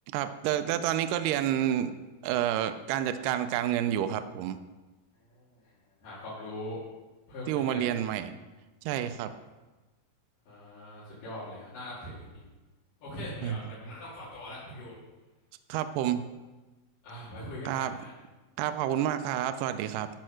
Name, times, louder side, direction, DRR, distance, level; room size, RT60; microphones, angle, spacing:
voice 1, 0.1-1.9 2.2-4.6 7.5-8.3 8.8-9.3 13.4-13.6 15.7-16.3 17.7-17.9 18.6-20.1, right 11 dB, 80° right, 9 dB, 2.0 m, -29 dB
voice 2, 5.3-5.6 6.0-6.8 7.3-7.9 10.5-12.5 13.0-15.0 17.0-18.1, left 1 dB, 65° left, -11 dB, 3.9 m, -41 dB
12.0 x 4.7 x 6.4 m, 1.2 s
omnidirectional pair, 4.1 m